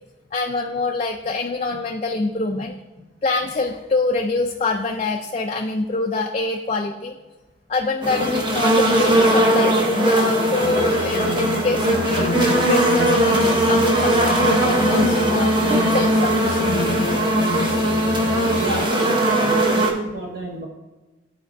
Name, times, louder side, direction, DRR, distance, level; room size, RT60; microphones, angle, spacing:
voice 1, 0.3-2.7 3.2-7.2 7.7-15.5 15.9-17.1, left 3 dB, 35° left, 2 dB, 0.4 m, -25 dB
sound 1, 8.0-19.9, right 1 dB, 25° right, 0.8 m, -19 dB
sound 2, 10.6-18.9, left 2 dB, 90° left, 0.6 m, -29 dB
voice 2, 18.6-20.7, right 2 dB, 55° right, 0 dB, 0.8 m, -31 dB
12.0 x 4.2 x 2.6 m, 1.1 s
head